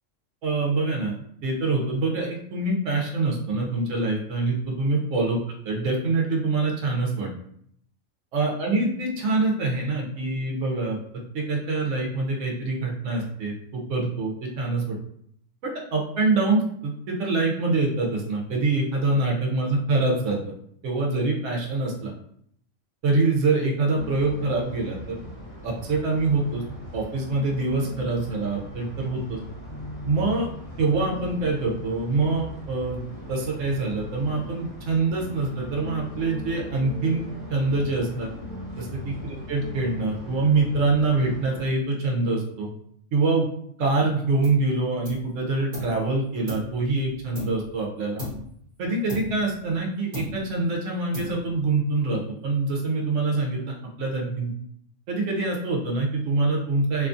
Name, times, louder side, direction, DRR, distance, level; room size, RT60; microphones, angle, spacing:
voice 1, 0.4-1.2 1.4-5.4 5.6-7.3 8.3-11.0 11.3-15.0 15.6-20.4 20.8-22.1 23.0-25.2 25.6-26.6 26.9-29.4 30.0-30.5 30.8-37.2 37.5-38.3 38.8-42.7 43.1-43.5 43.8-48.2 48.8-54.5 55.1-57.1, right 3 dB, 75° right, -1 dB, 1.0 m, -25 dB
sound 1, 23.9-41.7, left 2 dB, 45° left, 1.2 m, -39 dB
sound 2, 44.4-44.7 45.0-46.0 46.5-47.8 48.2-48.6 49.1-49.8 50.1-50.6 51.1-51.7, left 2 dB, 40° right, 1.1 m, -36 dB
2.7 x 2.3 x 2.5 m, 0.68 s
omnidirectional pair, 1.3 m